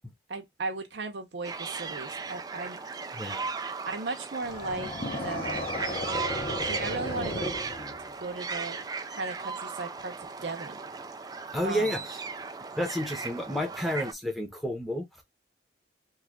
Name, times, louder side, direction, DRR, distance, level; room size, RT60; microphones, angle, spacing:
voice 1, 0.3-2.8 3.9-5.7 6.7-7.6 8.2-10.8 11.6-12.0, right 3 dB, 75° right, 0.7 m, -36 dB
sound 1, 1.4-14.1, right 4 dB, 20° right, 0.3 m, -37 dB
voice 2, 3.1-3.5 11.5-12.2 12.7-15.2, equal, ahead, 0.8 m, -31 dB
sound 2, 4.4-8.3, left 1 dB, 30° left, 0.7 m, -35 dB
3.1 x 2.4 x 3.6 m
head